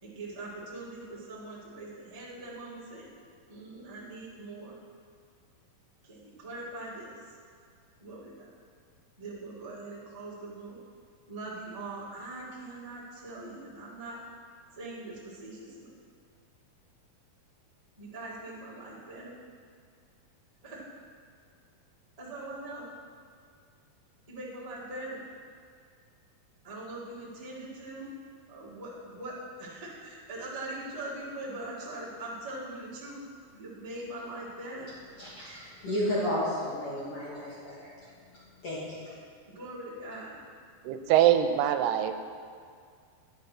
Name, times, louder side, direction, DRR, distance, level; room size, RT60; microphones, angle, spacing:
voice 1, 0.0-3.1 3.5-4.7 6.1-7.1 8.0-8.5 9.2-10.8 11.3-14.2 14.8-15.9 18.0-19.4 20.6-20.8 22.2-22.8 24.3-25.2 26.6-28.0 28.5-29.3 29.6-33.1 33.5-34.9 39.5-40.3, right 2 dB, 50° right, -8 dB, 0.4 m, -41 dB
voice 2, 35.2-37.9 38.6-39.1, left 1 dB, 55° left, -8 dB, 1.6 m, -33 dB
voice 3, 40.8-42.2, right 11 dB, 90° right, 9 dB, 2.6 m, -23 dB
9.9 x 5.5 x 5.9 m, 2.2 s
omnidirectional pair, 4.5 m